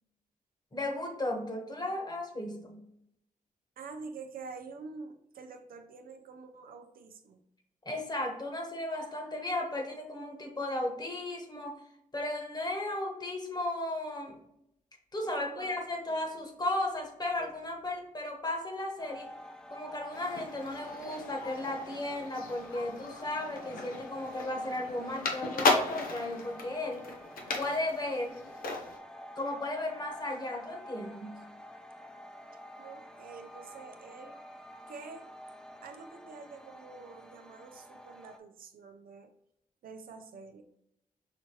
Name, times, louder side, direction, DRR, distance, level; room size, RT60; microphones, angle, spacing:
voice 1, 0.7-2.8 7.8-11.8 12.1-14.4 15.1-19.3 19.7-27.1 27.6-28.4 29.3-31.4, left 1 dB, 30° left, 2 dB, 1.2 m, -35 dB
voice 2, 3.8-7.4 15.4-15.8 16.1-16.4 32.8-34.4 34.9-35.3 35.8-39.3 39.8-40.6, right 4 dB, 80° right, 6 dB, 0.6 m, -47 dB
sound 1, 19.0-38.4, equal, 5° left, 0.6 m, -49 dB
sound 2, 20.1-29.0, left 3 dB, 90° left, 0.8 m, -35 dB
5.8 x 2.9 x 3.0 m, 0.78 s
cardioid pair, 65°, 15 cm